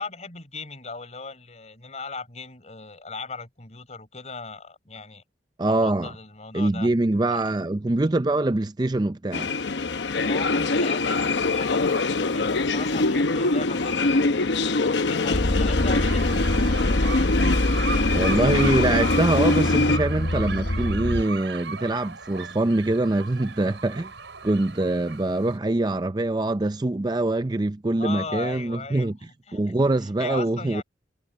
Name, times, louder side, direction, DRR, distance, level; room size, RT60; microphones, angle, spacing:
voice 1, 0.0-5.2 5.8-6.9 7.3-7.4 10.0-14.5 14.8-16.4 27.9-30.8, left 4 dB, 40° left, 4.4 m, -38 dB
voice 2, 5.6-6.1 6.5-9.5 18.1-24.1 24.4-29.2 29.5-30.8, right 2 dB, 25° right, 0.5 m, -24 dB
sound 1, 9.3-20.0, left 3 dB, 85° left, 0.8 m, -23 dB
sound 2, 15.3-21.2, left 1 dB, 60° left, 1.2 m, -25 dB
sound 3, 15.8-25.6, right 5 dB, 90° right, 6.5 m, -37 dB
head